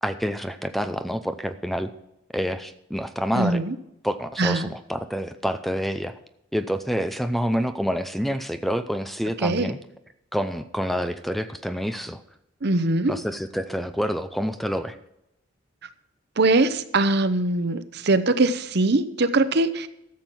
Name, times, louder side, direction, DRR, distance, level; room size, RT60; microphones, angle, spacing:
voice 1, 0.0-1.9 2.3-3.6 4.0-6.1 6.5-9.8 10.3-12.2 13.1-15.0, equal, ahead, 10 dB, 0.5 m, -27 dB
voice 2, 3.3-3.7 4.4-4.7 9.4-9.7 12.6-13.1 16.4-19.9, right 2 dB, 60° right, 11 dB, 0.8 m, -22 dB
13.0 x 7.3 x 6.1 m, 0.82 s
head